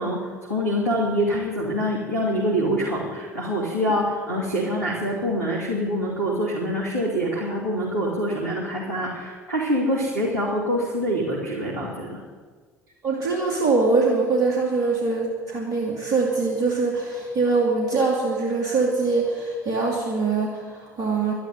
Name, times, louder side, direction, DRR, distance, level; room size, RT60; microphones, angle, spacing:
voice 1, 0.0-12.2, equal, 90° left, -6 dB, 3.2 m, -25 dB
voice 2, 13.0-21.3, right 3 dB, 45° right, 0 dB, 2.7 m, -23 dB
12.5 x 11.5 x 9.3 m, 1.5 s
figure-of-eight pair, 60°, 8 cm